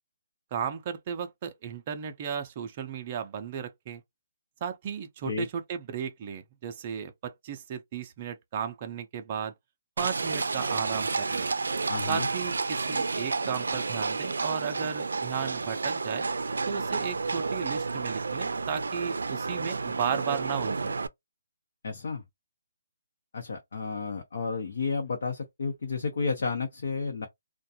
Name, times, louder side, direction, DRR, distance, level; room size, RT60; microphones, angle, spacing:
voice 1, 0.5-4.0 4.6-9.5 10.0-11.5 12.1-16.3 16.7-21.0, right 8 dB, 25° right, 0.5 m, -35 dB
Livestock farm animals working animals, 10.0-21.1, right 4 dB, 90° right, 0.4 m, -31 dB
voice 2, 11.9-12.3 21.8-22.2 23.3-27.3, left 4 dB, 60° left, 0.8 m, -31 dB
2.5 x 2.2 x 2.7 m
hypercardioid pair, 170°, 0 cm